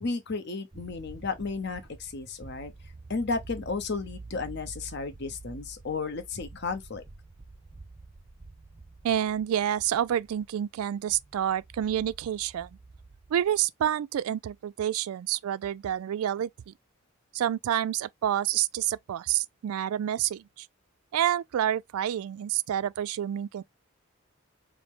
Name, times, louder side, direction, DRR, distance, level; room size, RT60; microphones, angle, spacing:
voice 1, 0.0-2.7 3.1-7.0, left 4 dB, 50° left, 0.8 m, -33 dB
sound 1, 0.7-13.7, right 3 dB, 25° right, 0.5 m, -48 dB
voice 2, 9.0-12.7 13.3-16.7 17.3-20.7 21.1-23.6, right 10 dB, 85° right, 0.3 m, -28 dB
4.9 x 2.0 x 3.5 m
head